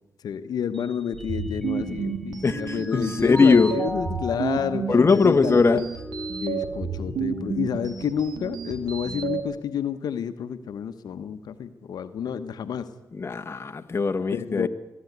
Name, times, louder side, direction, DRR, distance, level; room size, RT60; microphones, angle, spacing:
voice 1, 0.2-4.9 5.1-5.8 6.4-12.9 14.3-14.7, left 8 dB, 80° left, 1.1 m, -29 dB
Mallet percussion, 0.7-2.1 2.5-7.9, equal, 5° left, 0.9 m, -37 dB
sound 1, 1.1-9.4, right 6 dB, 80° right, 3.1 m, -32 dB
voice 2, 2.4-3.7 4.9-5.8 13.1-14.7, left 4 dB, 40° left, 1.4 m, -20 dB
22.0 x 14.0 x 9.5 m
cardioid pair, 60°, 7 cm